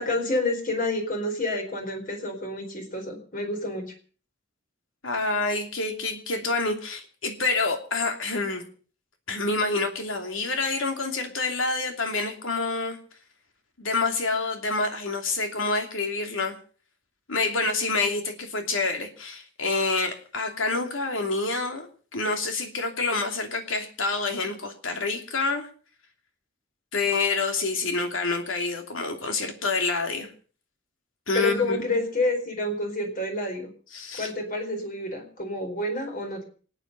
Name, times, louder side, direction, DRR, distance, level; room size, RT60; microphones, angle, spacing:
voice 1, 0.0-3.9 31.3-33.7 34.2-36.4, left 2 dB, 45° left, 4 dB, 4.4 m, -29 dB
voice 2, 5.0-8.6 9.3-13.0 13.8-16.6 17.3-21.9 22.1-25.7 26.9-30.3 31.3-31.8 33.9-34.3, left 3 dB, 80° left, 5 dB, 2.8 m, -27 dB
27.0 x 9.2 x 5.4 m, 0.42 s
head